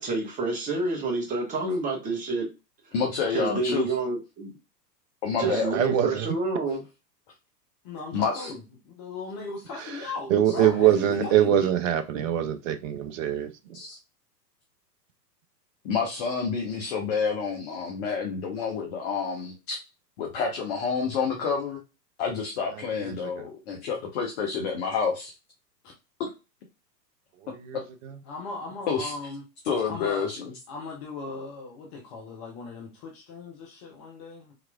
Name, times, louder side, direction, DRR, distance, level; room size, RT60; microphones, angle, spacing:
voice 1, 0.0-2.5 3.3-4.6 5.4-6.8, right 3 dB, 15° right, 0 dB, 0.9 m, -28 dB
voice 2, 2.9-3.9 5.2-6.0 8.1-8.5 11.2-11.3 13.7-14.0 15.8-19.8 20.2-21.8 22.2-25.3 26.2-26.3 28.9-29.1 29.6-30.5, left 5 dB, 40° left, 0 dB, 0.9 m, -29 dB
voice 3, 5.4-6.3 10.3-13.5, right 10 dB, 50° right, 8 dB, 0.6 m, -23 dB
voice 4, 7.8-8.6 8.8-11.7 28.3-29.4 29.9-30.3 30.7-34.5, left 3 dB, 20° left, 0 dB, 0.4 m, -38 dB
3.9 x 2.8 x 2.2 m, 0.28 s
figure-of-eight pair, 105°, 50 cm